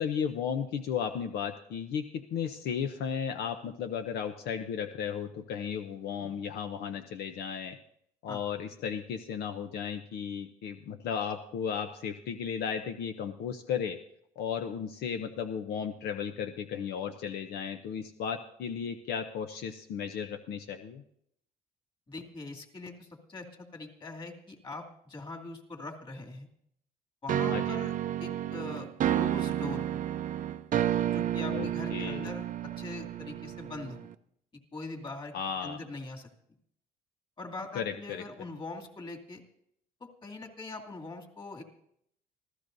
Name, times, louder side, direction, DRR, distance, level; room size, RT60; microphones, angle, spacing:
voice 1, 0.0-7.8 8.2-14.0 14.4-21.0 27.5-27.8 31.5-32.3 35.3-35.8 37.7-38.2, left 7 dB, 75° left, 7 dB, 0.8 m, -35 dB
voice 2, 22.1-26.5 27.2-27.9 28.2-30.0 31.0-34.1 34.7-35.3 35.6-36.3 37.4-39.4 40.0-41.6, left 3 dB, 30° left, 2 dB, 2.6 m, -42 dB
sound 1, 27.3-34.1, right 11 dB, 50° right, 0.6 m, -31 dB
25.5 x 15.5 x 2.7 m, 0.71 s
cardioid pair, 110°, 17 cm